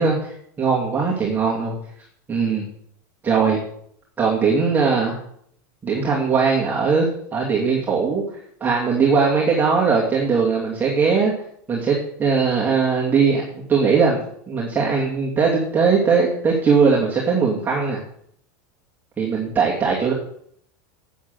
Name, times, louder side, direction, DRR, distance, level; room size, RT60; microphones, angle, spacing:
voice 1, 0.0-1.7 2.3-2.7 3.2-3.6 4.2-5.2 5.8-8.2 8.6-11.3 11.7-18.0 19.2-20.1, right 5 dB, 20° right, -4 dB, 2.6 m, -20 dB
8.6 x 8.0 x 7.9 m, 0.66 s
supercardioid pair, 130°, 10 cm